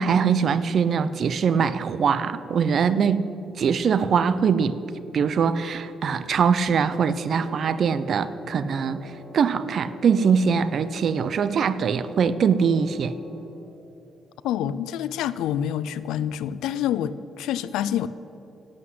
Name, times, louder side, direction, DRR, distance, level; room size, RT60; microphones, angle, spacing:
voice 1, 0.0-3.3 3.6-4.8 5.1-13.1, right 6 dB, 55° right, 15 dB, 0.6 m, -22 dB
Wind instrument woodwind instrument, 6.9-13.5, equal, 5° left, 3.5 m, -45 dB
voice 2, 14.4-18.1, left 10 dB, 90° left, 16 dB, 0.5 m, -27 dB
11.5 x 8.1 x 9.5 m, 2.9 s
cardioid pair, 90°, 0 cm